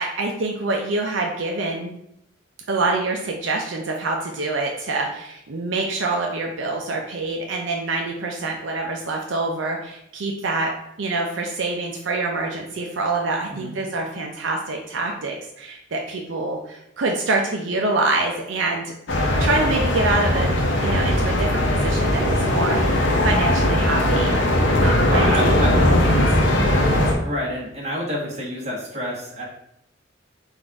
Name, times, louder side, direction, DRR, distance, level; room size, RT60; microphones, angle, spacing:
voice 1, 0.0-1.9 2.7-10.7 11.0-18.9 19.4-20.5 20.8-24.4 24.8-25.8, right 3 dB, 75° right, 1 dB, 0.5 m, -26 dB
sound 1, 19.1-27.1, left 1 dB, 80° left, 0.8 m, -19 dB
voice 2, 25.1-25.8 27.2-29.4, equal, 35° right, -5 dB, 1.4 m, -28 dB
4.0 x 2.5 x 4.6 m, 0.78 s
head